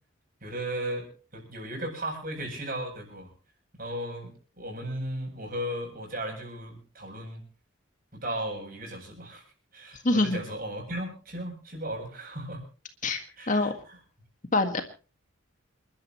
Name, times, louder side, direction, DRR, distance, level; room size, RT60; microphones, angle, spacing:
voice 1, 0.4-1.1 1.3-3.3 3.8-7.4 8.1-9.4 9.7-12.6 13.4-13.7, right 1 dB, 45° right, 2 dB, 7.8 m, -36 dB
voice 2, 10.0-10.4 13.0-13.2 13.5-13.7 14.5-14.8, left 2 dB, 40° left, 6 dB, 1.8 m, -24 dB
29.0 x 12.0 x 3.1 m, 0.35 s
head